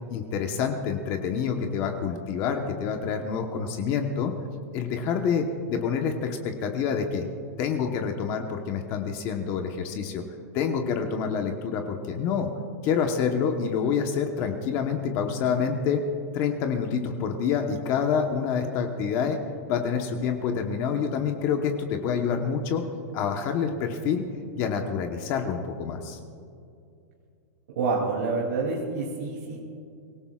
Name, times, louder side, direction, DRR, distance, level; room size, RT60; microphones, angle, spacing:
voice 1, 0.1-4.3 4.7-7.3 7.6-10.2 10.5-12.5 12.8-16.0 16.3-19.4 19.7-22.8 23.1-24.3 24.5-26.2, left 6 dB, 35° left, 4 dB, 1.1 m, -27 dB
voice 2, 27.7-29.6, right 4 dB, 80° right, -2 dB, 2.9 m, -27 dB
24.5 x 18.0 x 2.4 m, 2.5 s
supercardioid pair, 165°, 9 cm